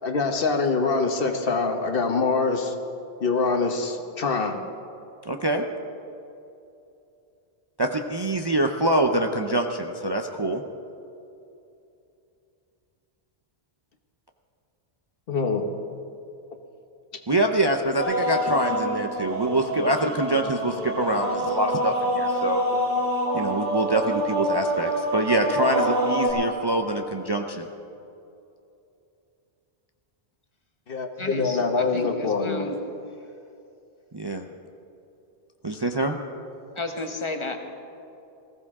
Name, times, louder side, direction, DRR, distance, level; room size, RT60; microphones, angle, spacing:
voice 1, 0.0-2.7 3.2-4.6 15.3-16.0 17.1-17.2 30.9-32.6, left 4 dB, 60° left, 6 dB, 1.2 m, -24 dB
voice 2, 5.3-5.6 7.8-10.6 17.3-22.6 23.3-27.7 34.1-34.4 35.6-36.2, right 1 dB, 30° right, 3 dB, 0.6 m, -25 dB
sound 1, 18.0-26.3, equal, 50° right, 2.9 m, -26 dB
voice 3, 31.2-32.8 36.7-37.6, left 2 dB, 30° left, 4 dB, 1.2 m, -33 dB
19.5 x 15.0 x 3.6 m, 2.7 s
omnidirectional pair, 1.1 m